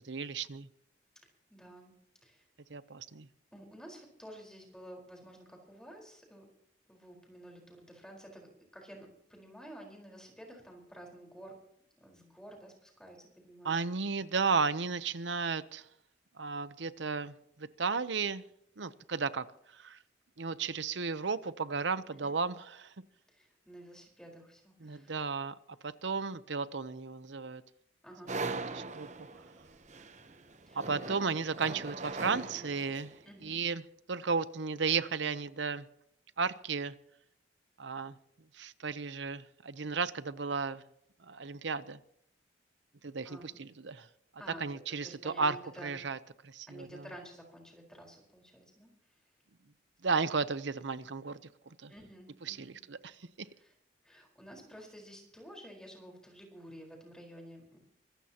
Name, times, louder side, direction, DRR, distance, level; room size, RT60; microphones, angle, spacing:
voice 1, 0.0-0.7 2.7-3.3 13.6-15.8 16.4-17.3 17.6-18.4 18.8-19.5 19.7-20.0 20.4-22.9 24.8-25.5 25.8-27.6 28.5-29.1 30.7-33.1 33.4-33.8 34.1-35.9 36.4-36.9 37.8-38.1 38.5-40.8 41.2-42.0 43.0-44.1 44.6-45.6 45.8-46.2 46.4-47.0 50.0-51.4 51.8-51.9 52.5-53.5, right 5 dB, 85° right, 0.8 m, -34 dB
voice 2, 1.5-1.9 2.2-2.5 3.5-6.4 6.9-11.6 12.0-13.7 22.1-22.3 23.3-25.2 28.0-28.3 30.7-31.2 33.2-33.6 43.2-43.6 44.4-46.0 46.7-49.2 51.9-52.8 53.6-53.7 54.0-57.8, equal, 5° left, 4.5 m, -51 dB
sound 1, 28.3-33.2, right 3 dB, 40° right, 0.9 m, -41 dB
24.5 x 15.0 x 3.0 m
head